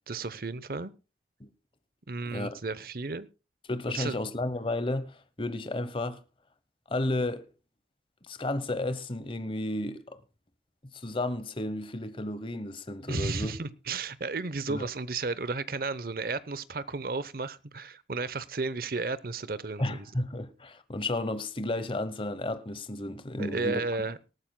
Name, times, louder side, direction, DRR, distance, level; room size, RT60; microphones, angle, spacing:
voice 1, 0.1-0.9 2.1-3.3 3.9-4.2 13.1-20.1 23.4-24.2, right 3 dB, 55° right, 0.8 m, -33 dB
voice 2, 2.3-2.6 3.7-6.2 6.9-7.5 8.3-10.2 10.9-13.5 14.7-14.9 19.8-23.8, left 2 dB, 30° left, 1.0 m, -32 dB
19.0 x 14.0 x 2.2 m
head